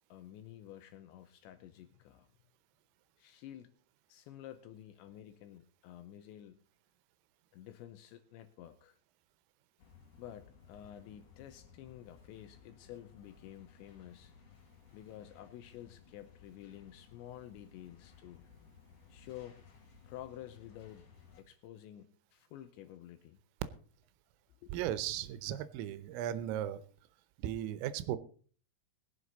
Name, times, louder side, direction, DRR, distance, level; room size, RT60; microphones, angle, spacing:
voice 1, 0.1-2.3 3.2-3.7 4.1-6.6 7.5-9.0 10.2-14.3 14.9-18.4 19.1-19.6 20.0-21.1 21.4-23.4 24.6-24.8, left 12 dB, 80° left, 10 dB, 2.7 m, -51 dB
sound 1, 9.8-21.4, left 6 dB, 55° left, 3.8 m, -60 dB
voice 2, 24.7-26.8 27.4-28.2, right 11 dB, 85° right, 14 dB, 3.4 m, -36 dB
21.5 x 7.7 x 4.0 m, 0.44 s
omnidirectional pair, 5.8 m